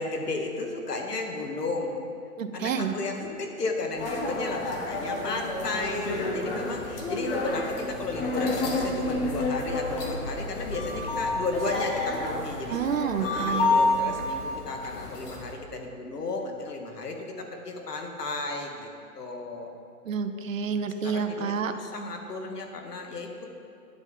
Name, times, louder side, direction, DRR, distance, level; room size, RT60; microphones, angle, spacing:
voice 1, 0.0-2.0 2.5-12.8 13.2-18.9 19.2-19.7 20.8-23.5, left 3 dB, 90° left, 3 dB, 2.0 m, -34 dB
voice 2, 2.4-2.9 12.7-13.8 20.0-21.7, right 6 dB, 55° right, 8 dB, 0.9 m, -29 dB
sound 1, 4.0-15.5, left 2 dB, 40° left, 1.5 m, -29 dB
11.0 x 8.1 x 5.4 m, 2.5 s
hypercardioid pair, 160°, 46 cm